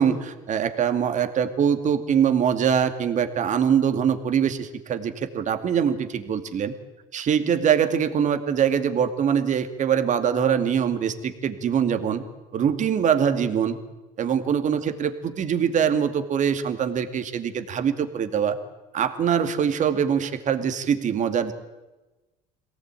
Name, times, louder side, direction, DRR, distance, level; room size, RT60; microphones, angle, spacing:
voice 1, 0.0-6.7 7.1-12.2 12.5-13.8 14.2-18.6 18.9-21.5, right 8 dB, 45° right, 9 dB, 2.3 m, -23 dB
23.0 x 17.5 x 9.0 m, 1.1 s
supercardioid pair, 85°, 17 cm